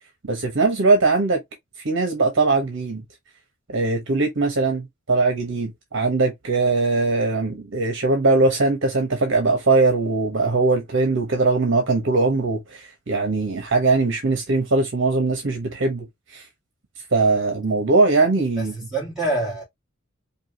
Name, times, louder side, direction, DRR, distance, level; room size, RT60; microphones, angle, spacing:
voice 1, 0.2-1.4 1.8-3.0 3.7-16.1 16.3-16.4 17.1-18.7, right 3 dB, 60° right, 0.9 m, -20 dB
voice 2, 18.6-19.6, right 2 dB, 5° right, 2.1 m, -26 dB
4.7 x 2.8 x 2.7 m
head